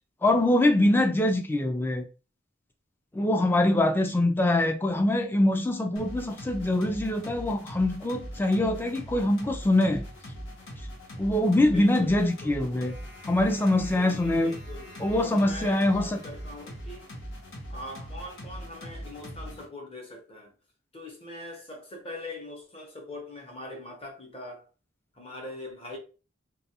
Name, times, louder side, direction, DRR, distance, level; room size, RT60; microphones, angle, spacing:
voice 1, 0.2-2.0 3.1-10.0 11.2-12.9 13.3-14.5 15.0-16.2, left 1 dB, 10° left, 0.3 m, -24 dB
sound 1, 6.0-19.7, equal, 85° left, 0.9 m, -41 dB
voice 2, 11.6-12.6 13.9-17.1 17.7-20.5 20.9-24.7 25.1-26.0, left 2 dB, 30° left, 0.8 m, -42 dB
2.4 x 2.3 x 2.8 m
head